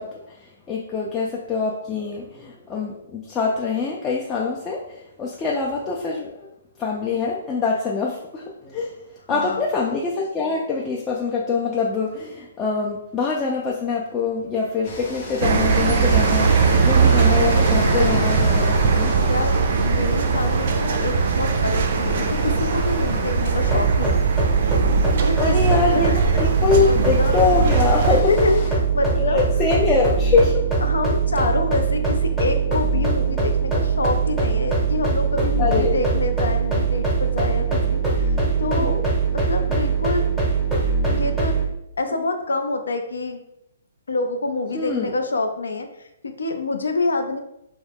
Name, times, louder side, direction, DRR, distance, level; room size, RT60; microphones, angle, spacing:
voice 1, 0.0-6.5 6.8-8.9 9.3-19.1 25.4-26.1 26.3-28.3 29.2-30.6 35.6-36.0 38.7-39.0 44.7-45.1, left 4 dB, 20° left, -3 dB, 0.4 m, -24 dB
voice 2, 9.3-9.6 19.3-24.4 25.2-25.5 25.9-26.2 26.7-27.4 28.0-29.4 29.8-29.9 30.8-39.0 39.3-40.3 41.1-41.6 42.0-43.4 44.1-47.4, left 3 dB, 85° left, 6 dB, 0.4 m, -27 dB
sound 1, 14.8-28.7, left 1 dB, 40° left, 0.7 m, -32 dB
sound 2, 15.4-28.2, right 5 dB, 55° right, 0.3 m, -20 dB
sound 3, 23.6-41.7, right 4 dB, ahead, 0.8 m, -22 dB
2.3 x 2.1 x 3.3 m, 0.80 s
hypercardioid pair, 145°, 0 cm